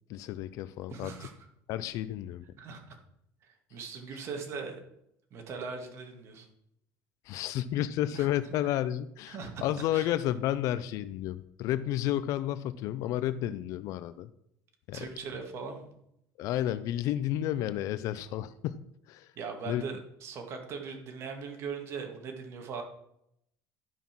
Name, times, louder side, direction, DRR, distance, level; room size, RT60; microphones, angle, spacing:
voice 1, 0.1-1.1 1.7-2.4 7.3-14.3 14.9-15.1 16.4-18.8 19.1-19.3 19.7-19.9, left 12 dB, 60° left, 14 dB, 0.5 m, -31 dB
voice 2, 0.9-1.3 2.6-3.0 3.4-4.7 5.3-6.5 8.1-8.3 9.3-10.1 14.9-15.9 19.4-22.8, right 5 dB, 45° right, 4 dB, 2.0 m, -40 dB
12.5 x 5.5 x 6.0 m, 0.76 s
cardioid pair, 150°, 6 cm